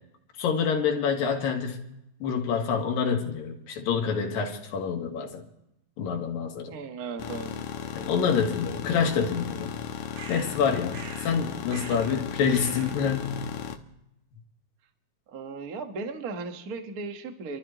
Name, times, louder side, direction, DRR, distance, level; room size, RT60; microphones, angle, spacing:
voice 1, 0.4-1.8 2.2-5.4 6.0-6.8 7.9-9.7 10.3-13.4, left 6 dB, 85° left, 2 dB, 3.6 m, -27 dB
voice 2, 6.7-7.5 15.3-17.6, right 4 dB, 55° right, 5 dB, 0.9 m, -36 dB
sound 1, 7.2-13.8, left 8 dB, 70° left, 2.3 m, -36 dB
sound 2, 10.1-10.6 10.9-11.4 11.7-12.2 12.5-13.0, right 5 dB, 85° right, 3.2 m, -43 dB
28.0 x 13.0 x 3.0 m, 0.84 s
omnidirectional pair, 3.9 m